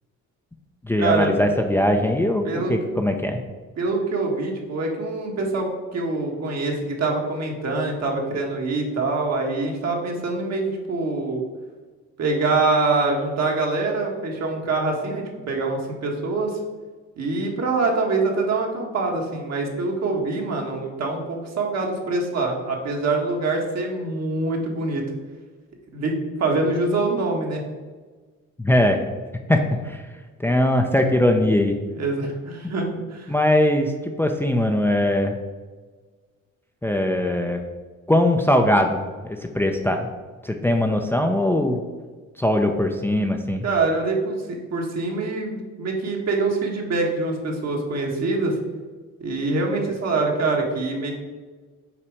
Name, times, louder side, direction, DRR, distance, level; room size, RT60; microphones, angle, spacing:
voice 1, 0.8-3.4 28.6-29.0 29.5-30.0 30.4-31.8 32.6-32.7 33.3-35.4 36.8-37.6 38.1-40.1 40.4-41.8 42.4-43.6, left 1 dB, 10° left, 3 dB, 0.5 m, -21 dB
voice 2, 3.8-11.4 12.2-16.6 17.2-25.0 25.9-27.6 31.9-33.3 43.6-48.5 49.2-51.1, right 3 dB, 60° right, 0 dB, 1.6 m, -24 dB
5.8 x 4.1 x 4.8 m, 1.4 s
cardioid pair, 90°, 30 cm